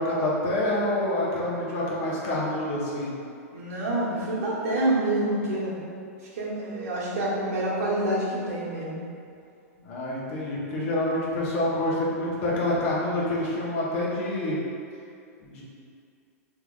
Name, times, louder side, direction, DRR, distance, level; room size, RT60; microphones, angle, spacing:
voice 1, 0.0-3.1 9.8-14.6 15.4-15.6, left 1 dB, 60° left, -5 dB, 0.9 m, -27 dB
voice 2, 3.5-5.8 6.3-9.0, right 1 dB, 70° right, -7 dB, 1.1 m, -27 dB
3.5 x 2.9 x 2.3 m, 2.4 s
hypercardioid pair, 115°, 8 cm